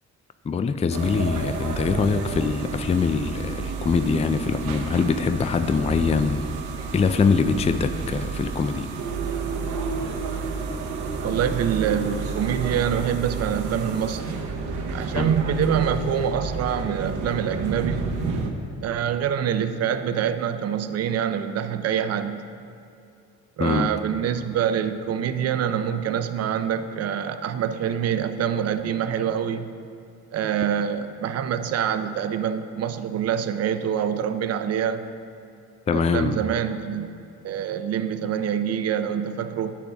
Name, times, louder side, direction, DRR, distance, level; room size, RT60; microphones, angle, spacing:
voice 1, 0.4-6.5 6.9-8.9 15.2-15.3 23.6-23.9 35.9-36.4, left 5 dB, 20° left, 10 dB, 0.4 m, -23 dB
sound 1, 0.9-18.5, right 4 dB, 80° right, 1.0 m, -30 dB
voice 2, 11.2-14.5 14.9-18.1 18.8-22.4 23.6-29.7 30.3-35.0 35.9-37.1 37.4-39.8, right 8 dB, 55° right, 10 dB, 0.6 m, -25 dB
10.0 x 8.5 x 3.5 m, 2.5 s
cardioid pair, 90°, 30 cm